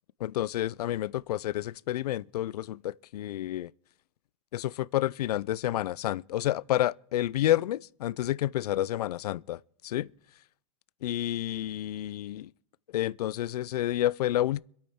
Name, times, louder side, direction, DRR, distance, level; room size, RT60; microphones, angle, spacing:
voice 1, 0.2-3.7 4.5-10.1 11.0-12.5 12.9-14.6, left 13 dB, 85° left, 0.4 m, -29 dB
25.5 x 8.8 x 3.6 m
hypercardioid pair, 140°, 19 cm